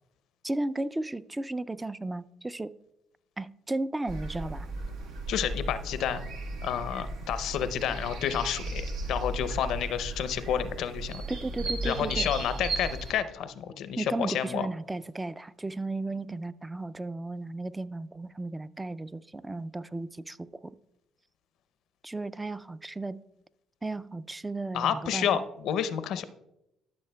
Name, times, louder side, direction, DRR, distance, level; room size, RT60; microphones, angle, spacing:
voice 1, 0.4-2.7 3.4-4.7 11.3-12.3 13.9-20.8 22.0-23.2 23.8-25.4, right 2 dB, 15° right, 16 dB, 0.3 m, -34 dB
sound 1, 4.1-13.1, right 2 dB, 75° right, 1.0 m, -35 dB
voice 2, 5.3-6.2 6.6-11.2 11.8-14.7 24.7-26.2, left 9 dB, 75° left, 12 dB, 0.5 m, -30 dB
12.5 x 6.3 x 2.2 m, 0.86 s
supercardioid pair, 75°, 0 cm